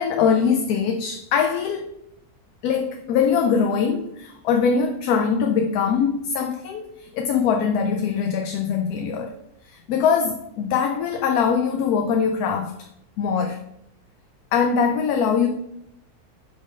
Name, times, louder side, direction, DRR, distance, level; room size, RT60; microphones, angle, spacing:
voice 1, 0.0-1.9 2.6-9.3 9.6-12.8 13.2-13.7 14.5-15.5, left 6 dB, 80° left, 4 dB, 1.1 m, -22 dB
5.3 x 3.5 x 5.3 m, 0.77 s
omnidirectional pair, 1.6 m